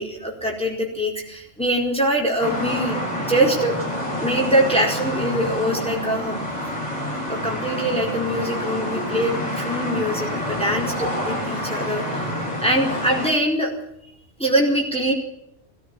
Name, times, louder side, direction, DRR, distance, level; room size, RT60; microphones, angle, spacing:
voice 1, 0.0-3.0 3.3-3.8 4.2-6.4 7.3-12.3 12.6-13.7 14.4-15.1, right 1 dB, 5° left, -1 dB, 4.6 m, -23 dB
sound 1, 2.4-13.3, left 1 dB, 35° left, 7.7 m, -27 dB
21.5 x 15.0 x 8.7 m, 0.75 s
omnidirectional pair, 1.3 m